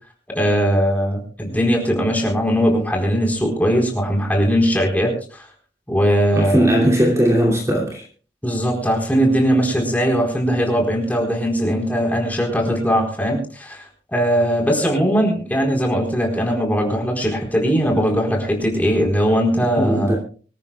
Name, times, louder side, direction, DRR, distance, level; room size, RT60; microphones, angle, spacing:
voice 1, 0.3-5.5 5.9-6.7 8.4-20.2, equal, 10° left, 4.3 m, -20 dB
voice 2, 6.3-8.0 19.8-20.2, equal, 15° right, 2.8 m, -18 dB
25.0 x 13.5 x 2.3 m
head